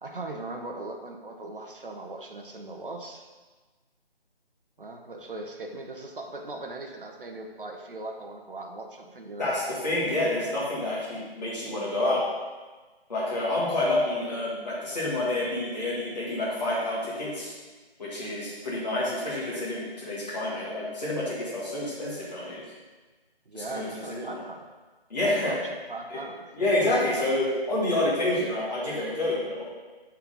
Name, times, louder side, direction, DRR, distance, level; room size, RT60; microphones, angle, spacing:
voice 1, 0.0-3.3 4.8-9.5 23.5-24.6 25.2-25.6 25.9-26.5, right 2 dB, 60° right, 3 dB, 1.0 m, -39 dB
voice 2, 9.4-12.2 13.1-17.5 18.0-22.6 23.5-24.4 25.1-25.6 26.1-26.2 26.5-29.6, left 1 dB, 40° left, -8 dB, 1.9 m, -28 dB
8.7 x 4.4 x 3.9 m, 1.3 s
figure-of-eight pair, 180°, 31 cm